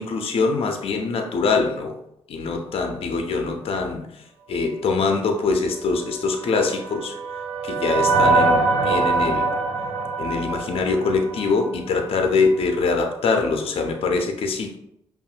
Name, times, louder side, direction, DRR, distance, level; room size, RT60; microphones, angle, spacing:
voice 1, 0.0-2.0 2.3-7.2 7.6-9.5 10.2-14.8, left 4 dB, 65° left, 4 dB, 0.6 m, -23 dB
sound 1, 6.4-11.8, right 3 dB, 75° right, 0.6 m, -23 dB
5.3 x 2.5 x 2.4 m, 0.78 s
supercardioid pair, 50°, 11 cm